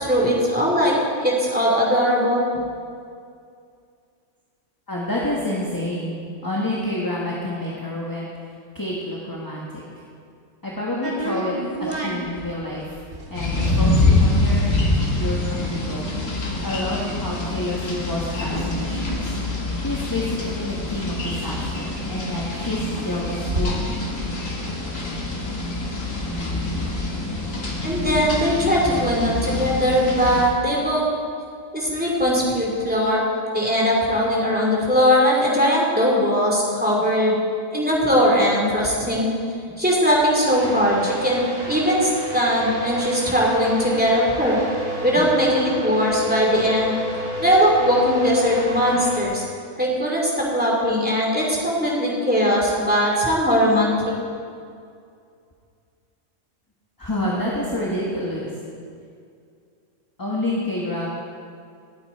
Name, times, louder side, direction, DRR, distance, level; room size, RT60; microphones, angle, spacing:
voice 1, 0.0-2.5 27.8-31.0 31.7-33.2 33.5-37.4 37.7-39.3 39.8-44.6 45.0-47.0 47.4-49.4 49.8-54.1, equal, 5° right, -4 dB, 2.9 m, -20 dB
voice 2, 4.9-8.3 8.7-9.7 10.6-11.5 11.8-13.0 13.3-14.7 15.2-16.1 16.6-19.3 19.8-24.1 57.0-58.5 60.2-61.1, left 1 dB, 15° left, -5 dB, 1.6 m, -28 dB
sound 1, 11.0-20.5 20.8-20.9 21.1-25.1, right 1 dB, 45° right, 1.7 m, -33 dB
sound 2, 13.3-30.5, left 2 dB, 85° left, 2.3 m, -25 dB
sound 3, 40.5-49.2, left 1 dB, 60° right, 4.1 m, -30 dB
19.5 x 8.6 x 4.4 m, 2.3 s
omnidirectional pair, 1.3 m